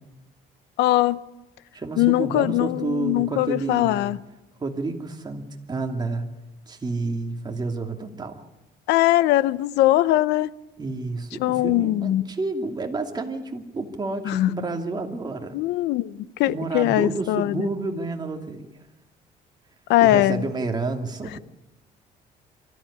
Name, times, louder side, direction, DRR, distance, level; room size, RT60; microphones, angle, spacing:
voice 1, 0.8-1.2 2.0-4.2 8.9-10.5 11.4-12.2 14.2-14.5 15.5-17.7 19.9-20.4, left 15 dB, 85° left, 0.7 m, -21 dB
voice 2, 1.7-4.1 4.6-6.3 6.7-8.5 10.8-15.6 16.5-18.7 20.0-21.4, right 3 dB, 25° right, 2.6 m, -30 dB
24.0 x 14.0 x 10.0 m
cardioid pair, 110°, 17 cm